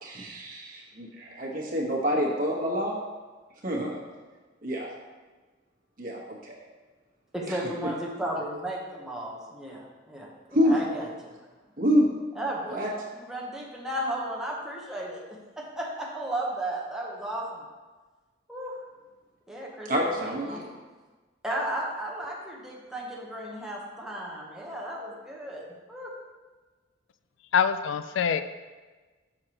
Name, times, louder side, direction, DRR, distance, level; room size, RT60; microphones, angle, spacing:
voice 1, 0.0-3.0 3.6-4.0 4.6-4.9 6.0-6.6 7.5-7.9 10.5-10.8 11.8-12.1 12.7-12.9 19.8-20.6, equal, 50° right, -3 dB, 1.3 m, -27 dB
voice 2, 7.3-11.3 12.4-12.8 13.1-17.6 18.5-18.8 19.5-19.9 20.2-20.7 21.4-26.1, right 1 dB, 5° right, -3 dB, 1.0 m, -34 dB
voice 3, 27.5-28.4, left 7 dB, 75° left, 11 dB, 0.3 m, -24 dB
6.6 x 6.1 x 2.9 m, 1.3 s
head